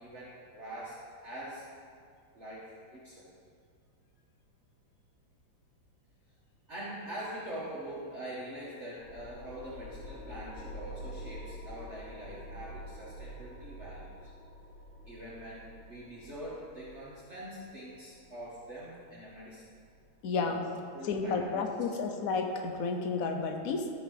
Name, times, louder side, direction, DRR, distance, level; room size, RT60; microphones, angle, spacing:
voice 1, 0.0-1.7 2.3-3.3 6.7-14.3 15.1-19.8 20.9-21.6, right 1 dB, 40° right, -7 dB, 1.4 m, -44 dB
sound 1, 9.0-20.0, equal, 40° left, 1.4 m, -47 dB
voice 2, 20.2-20.7 21.0-23.9, left 4 dB, 60° left, 4 dB, 1.0 m, -31 dB
13.0 x 6.2 x 3.9 m, 2.2 s
omnidirectional pair, 2.3 m